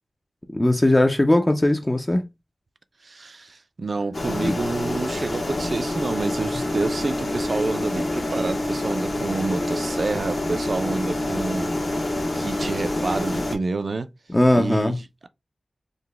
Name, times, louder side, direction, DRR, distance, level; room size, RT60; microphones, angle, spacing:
voice 1, 0.5-2.2 4.4-4.5 14.3-15.0, left 1 dB, 20° left, 0.4 m, -19 dB
voice 2, 3.0-12.1 12.4-14.1 14.5-15.3, right 3 dB, 65° right, 0.4 m, -28 dB
sound 1, 4.1-13.6, left 1 dB, 60° left, 1.0 m, -27 dB
3.9 x 2.1 x 3.3 m
wide cardioid pair, 75°, 0 cm